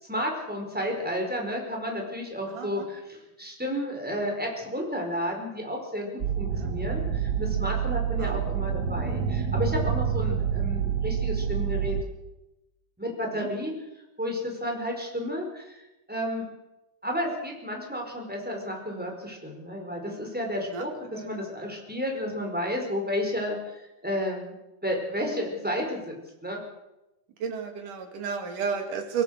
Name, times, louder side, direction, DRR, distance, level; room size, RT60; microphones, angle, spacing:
voice 1, 0.0-12.0 13.0-13.7 14.2-15.8 16.1-16.4 17.0-24.5 24.8-26.1 26.4-26.6, equal, 5° right, 1 dB, 4.8 m, -32 dB
voice 2, 2.6-2.9 6.5-6.7 8.2-8.4 20.7-20.8 21.1-21.3 27.4-29.2, right 6 dB, 80° right, 4 dB, 3.9 m, -32 dB
sound 1, 6.2-12.0, right 8 dB, 60° right, 1.1 m, -27 dB
24.0 x 17.0 x 6.6 m, 0.96 s
omnidirectional pair, 3.6 m